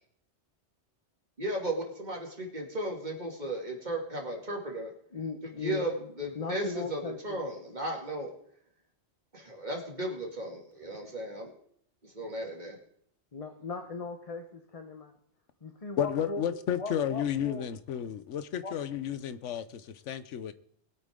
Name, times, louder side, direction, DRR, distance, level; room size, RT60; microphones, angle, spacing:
voice 1, 1.4-4.9 5.6-5.9 6.2-8.3 9.3-11.5 12.0-12.8, right 1 dB, 40° right, 0 dB, 2.7 m, -35 dB
voice 2, 5.1-7.4 13.3-15.1 15.6-17.6 18.6-18.7, left 4 dB, 35° left, 5 dB, 1.0 m, -39 dB
voice 3, 16.0-20.5, left 9 dB, 85° left, 13 dB, 1.1 m, -32 dB
21.0 x 8.6 x 3.7 m, 0.66 s
omnidirectional pair, 1.2 m